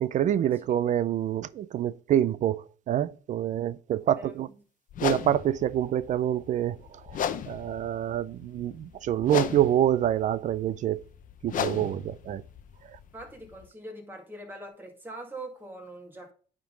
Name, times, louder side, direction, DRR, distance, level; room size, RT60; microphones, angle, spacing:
voice 1, 0.0-4.5 5.0-6.8 7.1-11.0 11.4-12.4, right 11 dB, 45° right, 0.4 m, -26 dB
voice 2, 4.1-4.5 13.1-16.3, right 1 dB, 10° right, 2.0 m, -43 dB
sound 1, 4.9-13.7, left 9 dB, 50° left, 0.7 m, -36 dB
9.3 x 3.7 x 3.8 m
cardioid pair, 110°, 17 cm